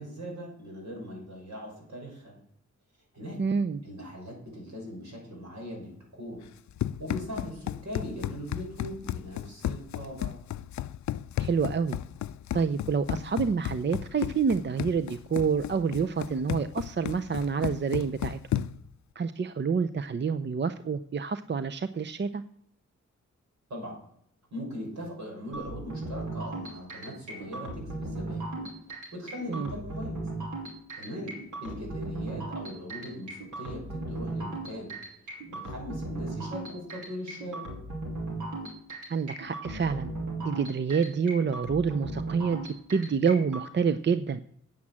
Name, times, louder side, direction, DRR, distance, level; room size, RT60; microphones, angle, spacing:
voice 1, 0.0-2.3 3.1-3.4 3.8-6.4 7.0-10.3 23.7-23.9 24.5-28.4 29.1-30.3 30.9-31.3 31.6-34.9 35.2-37.7, equal, 70° right, -1 dB, 6.2 m, -40 dB
voice 2, 3.4-3.8 11.4-12.0 12.5-18.7 19.2-22.4 29.5-29.7 39.1-40.1 40.4-42.6 42.9-44.4, right 5 dB, 40° right, 11 dB, 0.6 m, -28 dB
Run, 6.4-18.9, left 12 dB, 70° left, 0.4 m, -34 dB
sound 1, 25.5-43.6, right 2 dB, 90° right, 2.9 m, -37 dB
8.7 x 8.1 x 7.4 m, 0.68 s
cardioid pair, 45°, 30 cm